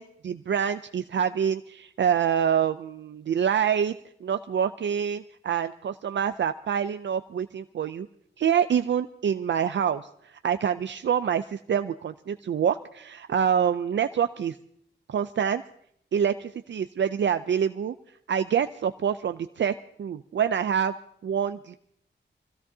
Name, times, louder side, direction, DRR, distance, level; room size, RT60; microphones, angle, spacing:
voice 1, 0.2-3.9 4.2-8.1 8.4-14.6 15.1-15.6 16.1-17.9 18.3-19.7 20.0-20.9 21.2-21.7, right 8 dB, 70° right, 9 dB, 0.5 m, -26 dB
25.5 x 16.0 x 2.8 m, 0.69 s
wide cardioid pair, 105°, 19 cm